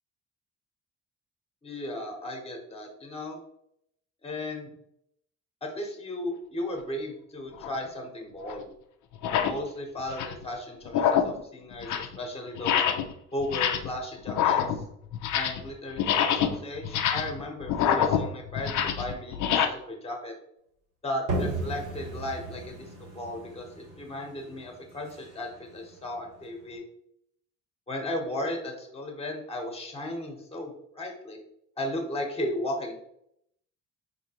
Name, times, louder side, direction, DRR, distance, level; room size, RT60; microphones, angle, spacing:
voice 1, 1.6-3.4 4.2-4.7 5.6-8.7 9.3-12.8 13.3-14.8 15.3-20.3 21.0-22.9 23.1-26.8 27.9-31.4 31.8-33.0, left 1 dB, 20° left, 2 dB, 0.9 m, -35 dB
sound 1, 7.6-7.8 8.5-8.6 9.1-9.6 10.0-10.5 10.9-11.4 11.7-12.2 12.6-13.1 13.4-14.0 14.3-15.7 16.0-19.7, left 9 dB, 75° left, 0.5 m, -26 dB
sound 2, 21.3-26.7, right 2 dB, 85° right, 1.5 m, -36 dB
4.4 x 2.8 x 2.8 m, 0.74 s
cardioid pair, 90°, 30 cm